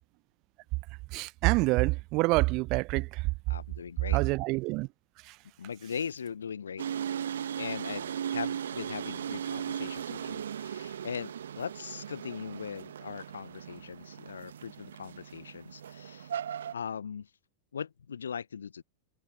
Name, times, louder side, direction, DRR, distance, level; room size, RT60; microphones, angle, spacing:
voice 1, 1.1-3.3 4.1-4.9 5.2-5.4, right 24 dB, 40° right, 0.4 m, -27 dB
voice 2, 3.5-4.2 5.6-6.9 7.6-16.3 16.7-17.3 17.7-18.8, left 7 dB, 70° left, 1.1 m, -40 dB
sound 1, 6.8-16.7, right 9 dB, 65° right, 1.4 m, -37 dB
figure-of-eight pair, 90°, 0 cm